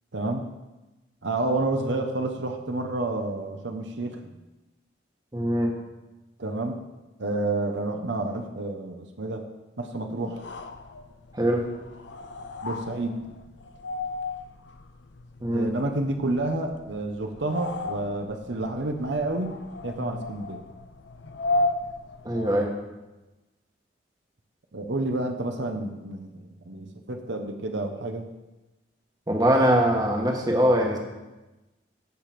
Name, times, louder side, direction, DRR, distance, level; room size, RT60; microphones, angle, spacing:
voice 1, 0.1-0.5 1.2-4.4 6.4-6.8 7.2-9.4 9.8-10.4 12.6-13.4 15.5-19.5 19.8-20.6 24.7-28.3, right 2 dB, 75° right, 5 dB, 1.0 m, -29 dB
voice 2, 5.3-5.7 11.3-11.7 15.4-15.7 22.2-22.7 29.3-31.0, equal, 20° right, 1 dB, 1.3 m, -22 dB
sound 1, 10.2-22.8, left 2 dB, 75° left, 0.7 m, -35 dB
14.0 x 5.1 x 5.9 m, 1.1 s
head